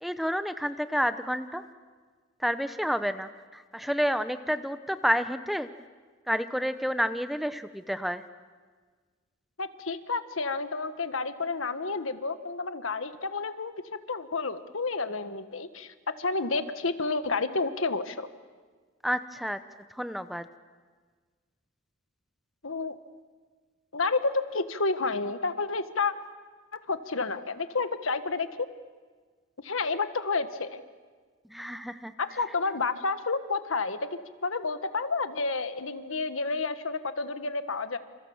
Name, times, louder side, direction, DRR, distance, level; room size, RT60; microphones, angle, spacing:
voice 1, 0.0-1.6 2.4-5.7 6.3-8.2 19.0-19.6 19.9-20.4 31.5-32.4, equal, ahead, 11 dB, 0.8 m, -30 dB
voice 2, 9.6-13.7 14.1-18.3 22.6-22.9 23.9-26.1 26.9-28.7 29.6-30.8 32.2-38.0, left 3 dB, 90° left, 10 dB, 1.5 m, -30 dB
28.5 x 28.5 x 7.2 m, 1.5 s
head